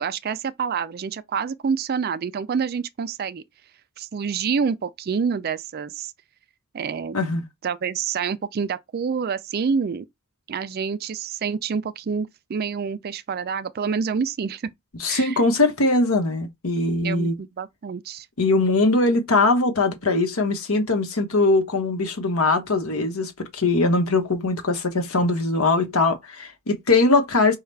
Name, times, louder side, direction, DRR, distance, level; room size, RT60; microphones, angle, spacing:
voice 1, 0.0-3.4 4.0-6.1 6.7-7.2 7.6-10.1 10.5-14.7 15.1-15.4 17.0-18.3, right 6 dB, 45° right, 0.4 m, -27 dB
voice 2, 7.1-7.5 15.0-17.4 18.4-27.6, left 3 dB, 75° left, 1.1 m, -21 dB
5.6 x 2.4 x 3.3 m
head